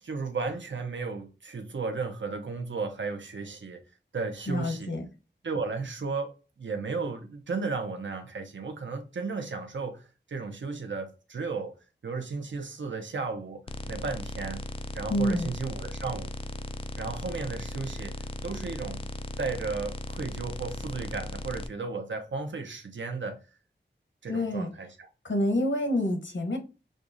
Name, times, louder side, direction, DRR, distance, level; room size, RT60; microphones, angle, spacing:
voice 1, 0.0-3.8 4.1-4.9 5.4-11.7 12.0-13.6 13.9-14.6 14.9-16.3 17.0-18.1 18.4-19.0 19.4-23.4 24.2-25.1, right 4 dB, 75° right, 0.8 m, -34 dB
voice 2, 4.5-5.1 15.1-15.5 24.3-24.7 25.2-26.6, left 1 dB, 80° left, 1.0 m, -27 dB
sound 1, 13.7-21.7, left 1 dB, 30° left, 0.3 m, -37 dB
6.5 x 2.4 x 2.6 m
wide cardioid pair, 80°, 19 cm